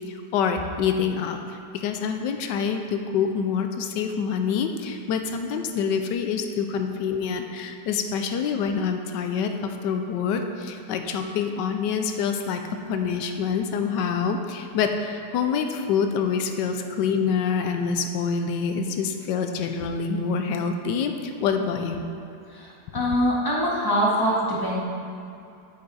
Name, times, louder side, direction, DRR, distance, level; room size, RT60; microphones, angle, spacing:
voice 1, 0.1-12.6 12.9-22.1, left 6 dB, 90° left, 6 dB, 1.3 m, -26 dB
voice 2, 22.5-24.8, equal, 15° left, -5 dB, 1.4 m, -24 dB
8.2 x 7.7 x 4.2 m, 2.6 s
omnidirectional pair, 1.8 m